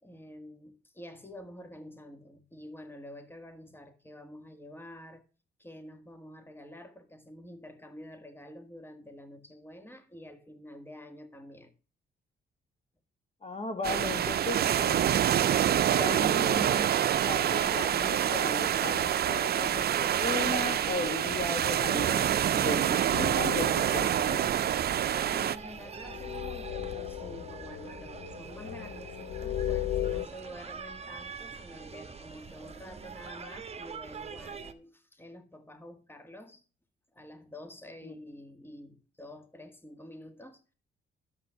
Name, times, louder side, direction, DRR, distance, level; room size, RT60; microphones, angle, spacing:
voice 1, 0.0-5.2 5.6-11.8 21.9-22.2 25.3-36.6 37.1-40.7, left 1 dB, 10° left, 1.8 m, -48 dB
voice 2, 13.4-15.1 15.9-16.9 17.2-22.2 22.5-24.5 38.0-38.1, left 3 dB, 30° left, 1.6 m, -36 dB
sound 1, 13.8-25.6, right 10 dB, 55° right, 0.6 m, -26 dB
sound 2, 16.6-34.7, right 5 dB, 30° right, 1.5 m, -45 dB
sound 3, 23.1-30.3, left 11 dB, 70° left, 0.6 m, -37 dB
11.5 x 7.5 x 4.7 m
cardioid pair, 90°, 20 cm